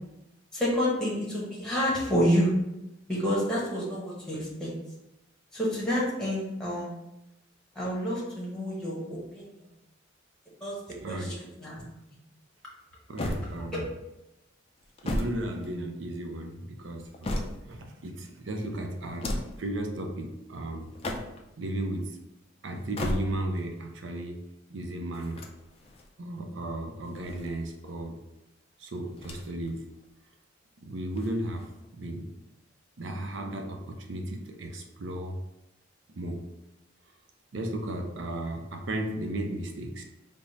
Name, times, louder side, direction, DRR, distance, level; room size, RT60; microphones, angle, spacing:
voice 1, 0.5-2.5 3.1-4.7 5.5-6.9 7.8-9.5 10.6-10.7 11.1-11.3 11.6-11.8 13.7-13.8, equal, 5° left, -6 dB, 0.9 m, -28 dB
voice 2, 11.0-11.4 13.1-13.9 15.0-17.4 17.7-19.3 19.6-20.9 21.6-22.2 22.6-24.4 24.7-25.4 26.2-28.2 28.8-29.8 30.8-32.3 33.0-35.4 36.1-36.4 37.5-40.0, right 1 dB, 65° right, 3 dB, 0.5 m, -34 dB
sound 1, 13.2-14.0 14.8-16.2 16.8-17.9 19.0-19.7 20.8-21.6 22.7-23.6 25.1-26.1 27.0-27.9 29.1-29.7 30.0-30.1 31.1-31.9, left 1 dB, 30° left, 0.3 m, -35 dB
3.5 x 2.0 x 3.9 m, 0.91 s
head